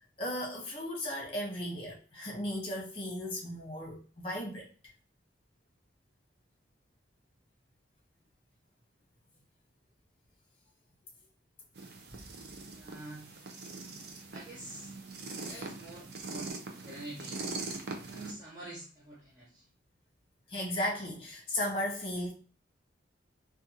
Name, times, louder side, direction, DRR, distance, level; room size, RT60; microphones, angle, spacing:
voice 1, 0.2-4.7 15.4-15.7 20.5-22.3, left 1 dB, 30° left, 1.0 m, -36 dB
sound 1, 11.7-18.3, right 3 dB, 55° right, 0.5 m, -42 dB
voice 2, 12.7-13.3 14.3-14.9 15.3-16.5 16.8-17.4 18.0-19.7, right 2 dB, 20° right, 0.7 m, -46 dB
2.5 x 2.4 x 2.7 m
head